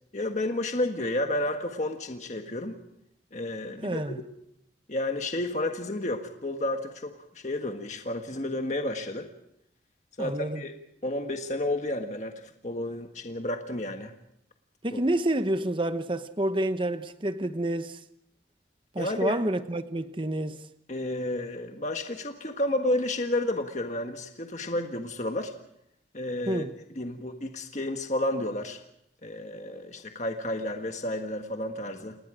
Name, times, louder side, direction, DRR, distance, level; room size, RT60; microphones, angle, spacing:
voice 1, 0.1-2.8 3.3-4.1 4.9-7.1 7.4-9.3 10.2-10.7 11.0-14.1 14.9-15.0 19.0-19.4 20.9-25.5 26.1-26.6 26.9-28.8 29.2-32.2, left 1 dB, 40° left, 1.5 m, -31 dB
voice 2, 3.8-4.2 10.2-10.6 14.8-18.0 18.9-20.6 26.5-26.7, right 1 dB, 30° right, 1.0 m, -29 dB
29.5 x 20.0 x 5.0 m
head